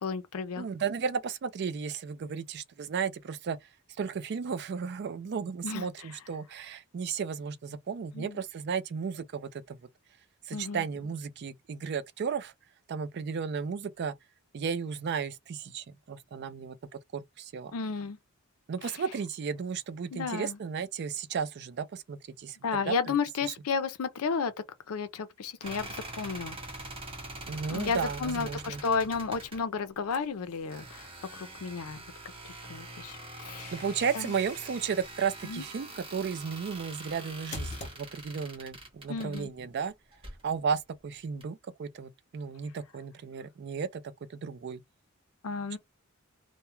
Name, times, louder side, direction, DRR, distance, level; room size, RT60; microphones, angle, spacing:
voice 1, 0.0-0.7 5.6-5.9 8.1-8.4 10.5-10.8 17.7-18.2 18.8-19.0 20.1-20.6 22.6-24.5 24.9-26.6 27.7-32.0 32.7-33.7 34.1-34.3 35.4-35.6 39.1-39.5 45.4-45.8, left 5 dB, 80° left, 0.5 m, -33 dB
voice 2, 0.6-3.6 4.0-9.8 10.5-12.5 12.9-14.1 14.5-16.8 17.1-17.7 18.7-22.6 22.9-23.1 27.5-28.8 33.7-39.9 40.4-44.0 44.4-44.8, right 6 dB, 50° right, 0.3 m, -34 dB
sound 1, 25.6-29.6 30.7-39.4 40.1-40.4 41.4-41.5, right 2 dB, 25° right, 0.8 m, -44 dB
sound 2, 30.1-31.2 33.1-38.5, left 2 dB, 35° left, 0.7 m, -47 dB
2.2 x 2.1 x 2.9 m
head